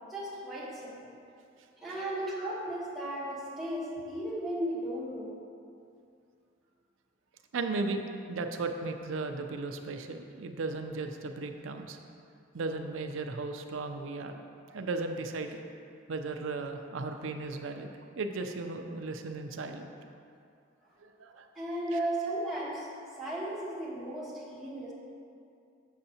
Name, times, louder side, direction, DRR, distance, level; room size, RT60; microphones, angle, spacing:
voice 1, 0.1-1.1 1.8-5.4 21.5-22.9 23.2-24.9, right 1 dB, ahead, -9 dB, 1.2 m, -35 dB
voice 2, 7.5-8.0 8.3-12.0 12.5-14.4 14.7-15.6 16.1-19.9 21.0-21.5 21.9-22.0, right 3 dB, 90° right, 6 dB, 0.5 m, -36 dB
6.8 x 6.6 x 2.8 m, 2.4 s
head